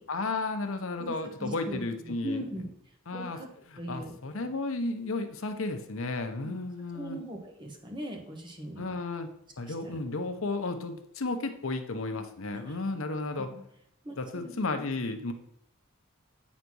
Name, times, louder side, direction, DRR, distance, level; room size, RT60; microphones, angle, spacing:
voice 1, 0.1-2.4 3.1-3.4 3.7-7.2 8.8-9.3 9.6-13.5 14.2-15.3, left 3 dB, 70° left, 7 dB, 0.8 m, -33 dB
voice 2, 1.4-1.8 2.2-2.7 3.1-3.5 3.8-4.2 6.4-6.5 6.9-9.0 9.8-10.0 12.5-12.7 13.4-13.6 14.0-14.4, equal, 25° right, 1 dB, 1.4 m, -39 dB
8.0 x 4.2 x 6.1 m, 0.71 s
head